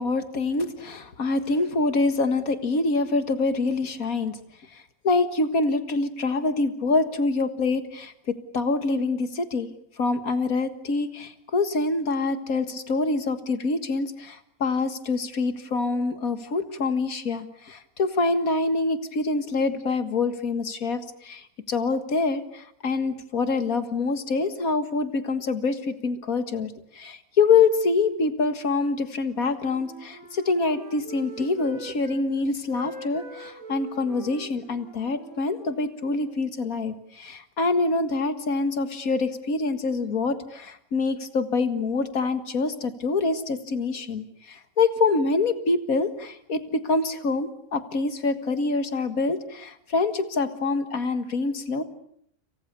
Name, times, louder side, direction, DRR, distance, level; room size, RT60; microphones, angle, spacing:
voice 1, 0.0-4.4 4.7-9.7 10.0-51.8, left 3 dB, 75° left, 10 dB, 2.2 m, -25 dB
Wind instrument woodwind instrument, 28.9-32.3 32.6-36.5, right 3 dB, 75° right, 4.1 m, -44 dB
30.0 x 28.0 x 6.8 m, 0.70 s
omnidirectional pair, 1.5 m